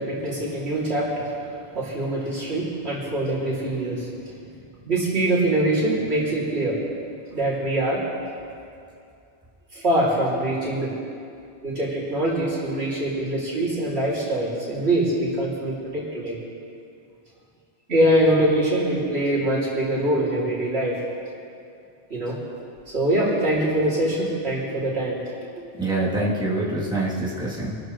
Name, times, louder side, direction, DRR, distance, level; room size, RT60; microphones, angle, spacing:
voice 1, 0.0-4.1 4.9-6.8 7.3-8.0 9.7-10.9 11.6-16.4 17.9-21.0 22.1-22.4 22.9-25.2, right 1 dB, 75° right, -7 dB, 3.5 m, -23 dB
voice 2, 25.8-27.8, right 2 dB, 5° right, -9 dB, 3.2 m, -25 dB
25.5 x 12.5 x 3.3 m, 2.5 s
omnidirectional pair, 1.1 m